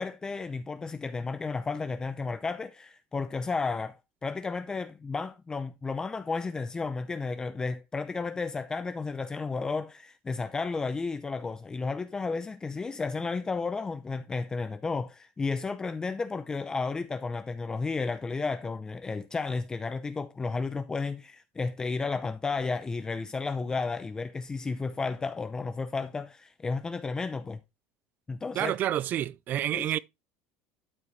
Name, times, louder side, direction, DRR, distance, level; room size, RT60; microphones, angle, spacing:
voice 1, 0.0-27.6 28.3-28.7 29.7-29.9, left 4 dB, 15° left, 0.5 m, -33 dB
voice 2, 28.6-30.0, right 12 dB, 40° right, 0.4 m, -29 dB
12.0 x 4.5 x 3.2 m
cardioid pair, 145°, 5 cm